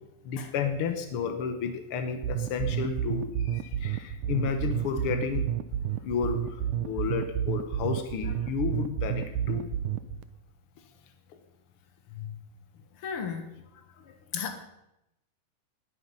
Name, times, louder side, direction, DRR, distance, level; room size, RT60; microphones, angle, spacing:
voice 1, 0.2-5.5 6.0-9.7 14.0-14.2, left 6 dB, 85° left, 7 dB, 1.2 m, -32 dB
sound 1, 2.2-10.2, right 10 dB, 80° right, 2.0 m, -30 dB
voice 2, 13.0-13.5 14.3-14.6, left 7 dB, 60° left, 7 dB, 1.4 m, -34 dB
19.5 x 9.5 x 5.5 m, 0.88 s
omnidirectional pair, 4.2 m